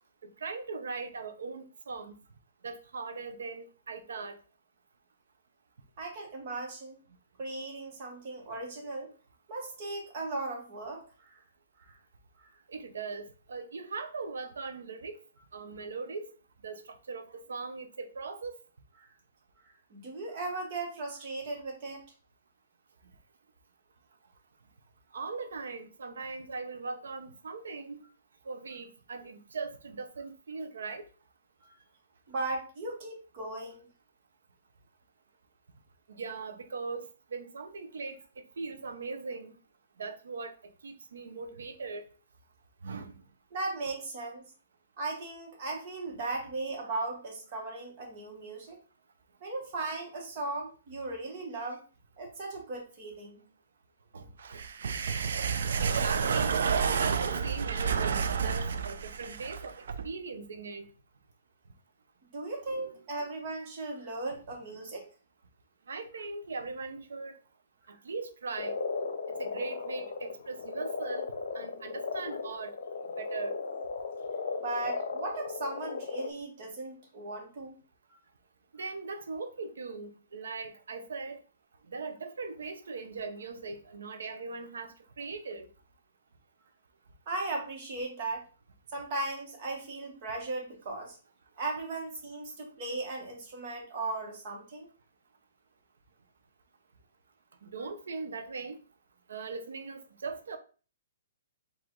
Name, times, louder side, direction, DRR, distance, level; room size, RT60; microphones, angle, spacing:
voice 1, 0.2-2.2 2.6-4.4 12.7-15.2 15.5-16.3 16.6-18.5 25.1-28.0 28.4-31.0 36.1-37.0 37.3-39.5 40.0-42.0 42.8-43.1 54.1-54.6 55.8-56.5 57.0-59.7 60.0-60.9 62.6-63.0 65.9-67.4 68.0-68.8 69.4-72.7 73.2-73.5 78.7-81.4 81.9-85.7 97.6-98.8 99.3-100.6, right 4 dB, 85° right, 0.8 m, -40 dB
voice 2, 6.0-7.0 7.4-9.1 9.5-11.4 11.8-12.0 12.4-12.5 19.0-19.1 19.6-22.0 31.6-31.7 32.3-33.9 43.5-44.4 45.0-48.8 49.4-51.8 52.2-53.4 62.3-65.1 74.6-77.7 87.3-88.4 88.9-91.2 91.6-94.9, right 2 dB, 35° right, 1.5 m, -37 dB
sound 1, 54.4-60.1, right 6 dB, 70° right, 0.5 m, -30 dB
Frog, 68.6-76.3, left 4 dB, 75° left, 0.7 m, -36 dB
4.9 x 2.7 x 3.8 m
hypercardioid pair, 170°, 0 cm